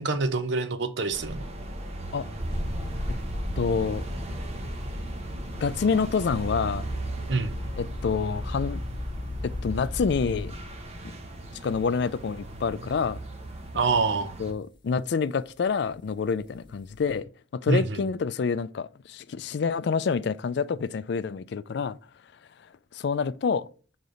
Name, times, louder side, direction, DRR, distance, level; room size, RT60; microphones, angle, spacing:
voice 1, 0.0-1.5 7.3-7.6 13.7-14.3 17.7-18.0, right 4 dB, 65° right, 0.7 m, -26 dB
sound 1, 1.1-14.5, right 1 dB, 35° right, 0.9 m, -37 dB
sound 2, 2.4-11.2 11.9-12.3 12.8-12.9 16.5-17.2, left 1 dB, 25° left, 0.9 m, -37 dB
voice 2, 3.6-4.0 5.6-6.9 7.8-8.8 9.4-10.5 11.6-13.2 14.4-17.3 17.5-22.0 22.9-23.7, left 5 dB, 60° left, 0.4 m, -27 dB
6.7 x 4.0 x 3.8 m
head